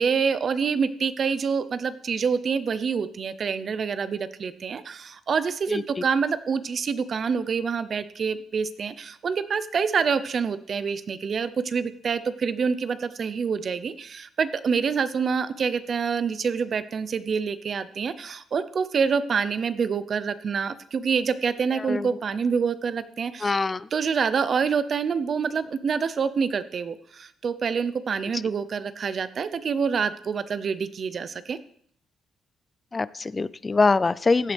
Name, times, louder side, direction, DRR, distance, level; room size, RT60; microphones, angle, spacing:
voice 1, 0.0-23.5 23.9-31.6, right 6 dB, 50° right, 14 dB, 0.7 m, -26 dB
voice 2, 5.7-6.0 21.7-22.1 23.4-23.9 28.3-28.4 32.9-34.5, left 3 dB, 25° left, 19 dB, 0.4 m, -24 dB
15.5 x 8.2 x 3.4 m, 0.62 s
cardioid pair, 90°, 0 cm